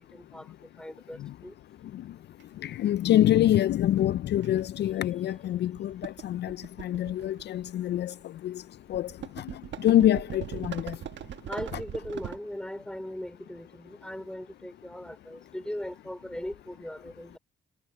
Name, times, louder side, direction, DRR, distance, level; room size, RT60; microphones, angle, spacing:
voice 1, 0.0-1.5 11.5-17.4, left 1 dB, 5° left, 2.8 m, -39 dB
sound 1, 2.4-2.5 4.0-4.1 4.4-4.6 5.3-5.5 5.7-7.8 8.9-12.4, right 10 dB, 65° right, 1.2 m, -40 dB
voice 2, 2.6-8.1 8.4-8.6 8.9-9.1 9.4-9.5 9.8-11.0, left 12 dB, 60° left, 0.4 m, -25 dB
cardioid pair, 90°, 20 cm